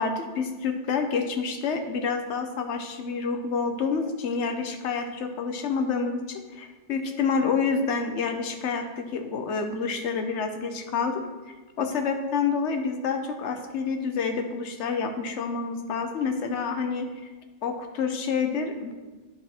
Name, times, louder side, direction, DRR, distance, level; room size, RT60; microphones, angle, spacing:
voice 1, 0.0-11.2 11.8-17.1 17.6-18.9, left 5 dB, 70° left, 6 dB, 1.1 m, -28 dB
10.5 x 4.1 x 4.3 m, 1.3 s
omnidirectional pair, 1.2 m